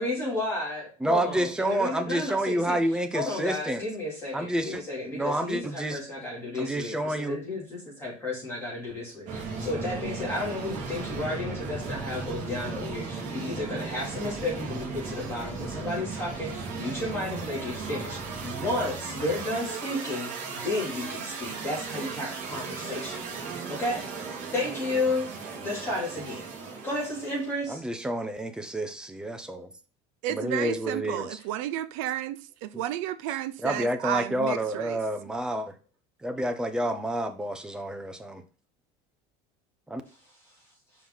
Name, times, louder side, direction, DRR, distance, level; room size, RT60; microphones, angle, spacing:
voice 1, 0.0-2.8 3.1-23.2 23.7-24.0 24.5-25.3 25.6-26.4 26.8-27.8, left 2 dB, 15° left, 2.9 m, -32 dB
voice 2, 1.0-3.8 4.3-4.8 5.1-6.0 6.5-7.4 27.7-29.7 30.3-31.4 32.7-32.8 33.6-35.8 36.2-38.4 39.9-40.0, right 1 dB, 5° right, 0.5 m, -29 dB
sound 1, 9.3-27.6, right 4 dB, 45° right, 1.7 m, -36 dB
voice 3, 30.2-35.0 36.8-36.9, right 12 dB, 80° right, 0.6 m, -32 dB
5.4 x 4.7 x 3.9 m
cardioid pair, 170°, 17 cm